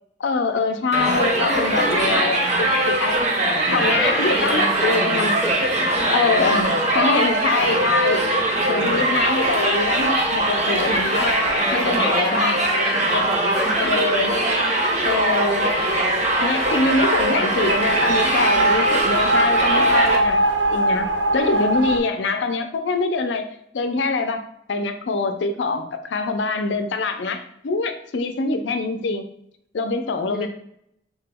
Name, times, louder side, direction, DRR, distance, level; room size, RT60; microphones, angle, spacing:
voice 1, 0.2-3.3 3.7-5.4 6.1-8.3 8.7-11.3 11.7-13.3 13.8-14.4 15.0-15.9 16.4-20.4 20.7-21.1 21.3-23.4 23.7-29.3 29.7-30.5, left 3 dB, 85° left, 7 dB, 0.5 m, -24 dB
Crowd, 0.9-20.2, right 1 dB, 40° right, 0.7 m, -21 dB
voice 2, 1.5-2.3 3.8-5.9 11.6-13.8 30.2-30.5, equal, ahead, 1 dB, 0.5 m, -29 dB
sound 1, 17.6-22.0, right 1 dB, 80° right, 0.7 m, -21 dB
3.7 x 2.9 x 3.5 m, 0.73 s
head